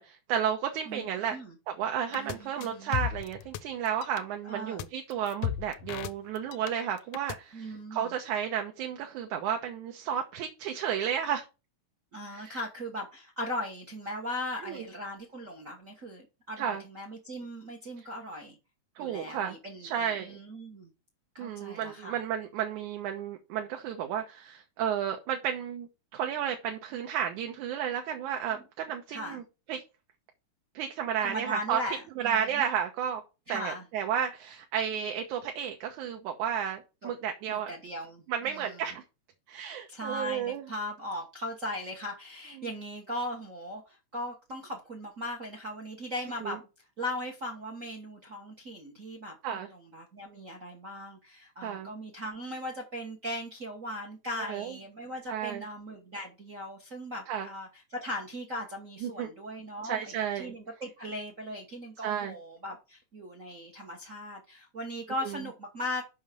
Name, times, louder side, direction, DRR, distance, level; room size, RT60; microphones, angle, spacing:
voice 1, 0.0-1.4 1.8-11.5 12.3-12.6 14.7-14.8 16.6-16.8 19.0-20.4 21.4-29.4 29.7-29.8 30.7-31.8 32.2-33.2 33.5-37.7 38.3-39.0 39.5-40.6 42.6-42.7 46.4-46.6 49.4-49.7 51.6-51.9 54.4-54.8 55.3-55.6 57.3-57.5 59.0-59.3 59.8-60.5 62.0-62.4 65.2-65.4, right 9 dB, 75° right, 2.5 m, -32 dB
voice 2, 0.9-1.5 2.1-2.9 4.4-4.8 7.5-8.1 12.1-18.6 19.0-20.9 21.3-22.2 28.5-28.6 29.1-29.4 31.2-32.6 33.5-33.8 37.0-37.1 37.5-38.8 39.9-46.7 47.0-66.1, left 1 dB, 45° right, 1.0 m, -38 dB
sound 1, 2.1-2.4 2.6-3.6 3.9-4.2 4.8-4.9 5.1-6.7 7.0-7.4, left 11 dB, 80° left, 2.0 m, -34 dB
6.3 x 5.7 x 6.8 m
omnidirectional pair, 3.5 m